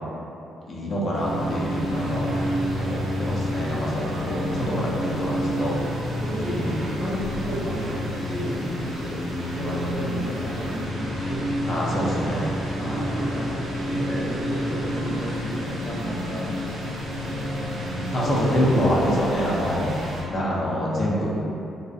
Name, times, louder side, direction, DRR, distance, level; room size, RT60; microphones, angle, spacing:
voice 1, 0.7-2.3 2.8-5.7 11.7-13.1 14.8-15.3 17.3-17.7 18.1-19.9 20.3-21.3, equal, 45° left, -5 dB, 0.5 m, -26 dB
sound 1, 1.1-20.2, equal, 75° right, 0.6 m, -29 dB
voice 2, 6.2-11.4 12.8-16.5 18.1-18.7, equal, 5° left, -9 dB, 0.8 m, -32 dB
2.6 x 2.0 x 2.4 m, 2.8 s
cardioid pair, 90°, 0 cm